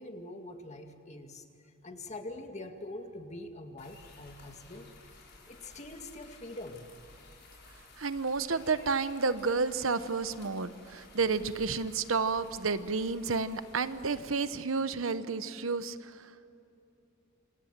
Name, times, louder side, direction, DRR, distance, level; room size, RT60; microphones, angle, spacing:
voice 1, 0.0-1.4 1.8-4.9 5.5-6.9, left 2 dB, 35° left, 5 dB, 2.1 m, -44 dB
sound 1, 3.8-14.2, left 2 dB, 60° left, 6.3 m, -55 dB
voice 2, 8.0-16.3, right 4 dB, 75° right, 12 dB, 1.0 m, -31 dB
27.5 x 27.0 x 7.5 m, 2.7 s
head